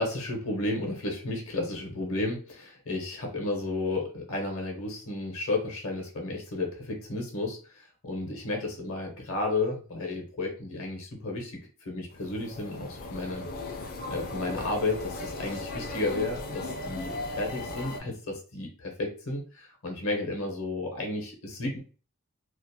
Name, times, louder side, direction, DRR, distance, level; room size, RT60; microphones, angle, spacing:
voice 1, 0.0-11.6 11.9-13.5 14.1-21.8, left 2 dB, 65° left, 2 dB, 0.7 m, -32 dB
sound 1, 12.1-18.0, left 2 dB, 40° left, 0.4 m, -37 dB
2.4 x 2.0 x 2.6 m, 0.36 s
head